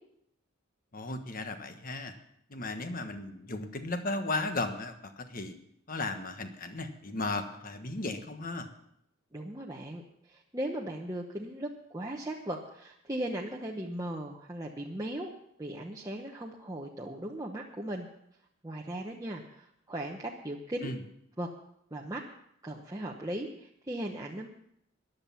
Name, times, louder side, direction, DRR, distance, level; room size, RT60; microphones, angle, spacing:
voice 1, 0.9-2.1 2.5-5.5 5.9-8.7 20.8-21.0, left 2 dB, 40° left, 7 dB, 1.3 m, -35 dB
voice 2, 9.3-15.3 15.6-18.1 18.6-20.9 21.4-21.5 21.9-22.2 22.6-24.5, right 1 dB, 15° right, -2 dB, 1.0 m, -38 dB
14.5 x 10.5 x 5.7 m, 0.73 s
head